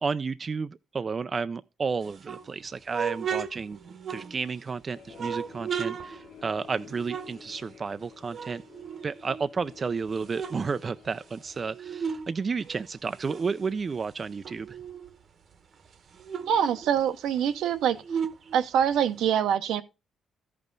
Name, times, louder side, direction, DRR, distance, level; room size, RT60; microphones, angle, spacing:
voice 1, 0.0-3.8 4.1-8.6 9.0-14.8, right 5 dB, 35° right, 0.4 m, -32 dB
sound 1, 2.0-4.7 5.1-8.0 8.3-9.6 10.0-12.3 12.6-15.2 15.5-15.6 15.9-19.3, right 7 dB, 55° right, 0.9 m, -36 dB
sound 2, 4.9-11.7, left 7 dB, 70° left, 1.4 m, -51 dB
voice 2, 16.5-18.2 18.5-19.8, right 8 dB, 80° right, 0.8 m, -25 dB
13.5 x 5.4 x 3.8 m
cardioid pair, 90°, 0 cm